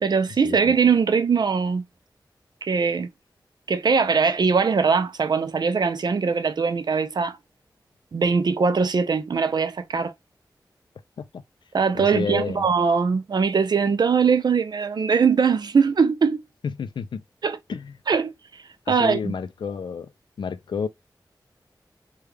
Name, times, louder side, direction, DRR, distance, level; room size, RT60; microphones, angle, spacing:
voice 1, 0.0-1.8 2.6-3.1 3.7-7.4 8.1-10.1 11.7-16.4 17.4-17.6 18.1-18.3 18.9-19.3, right 5 dB, 65° right, 0.5 m, -21 dB
voice 2, 11.9-12.6 16.8-17.2 17.7-17.9 18.9-20.1 20.4-20.9, left 6 dB, 90° left, 0.4 m, -30 dB
3.4 x 2.3 x 3.2 m
wide cardioid pair, 75°, 8 cm